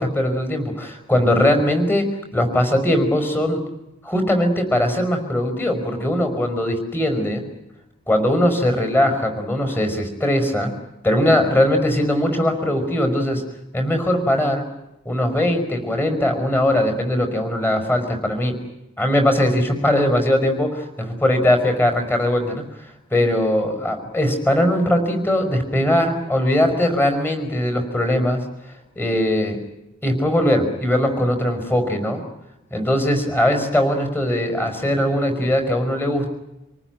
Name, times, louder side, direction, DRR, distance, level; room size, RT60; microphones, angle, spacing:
voice 1, 0.0-2.1 2.3-3.6 4.0-7.4 8.1-10.7 11.0-13.4 13.7-14.6 15.0-18.6 19.0-22.6 23.1-28.4 28.9-29.6 30.0-32.2 32.7-36.3, left 1 dB, 10° left, 6 dB, 5.2 m, -20 dB
28.0 x 19.0 x 9.3 m, 0.90 s
head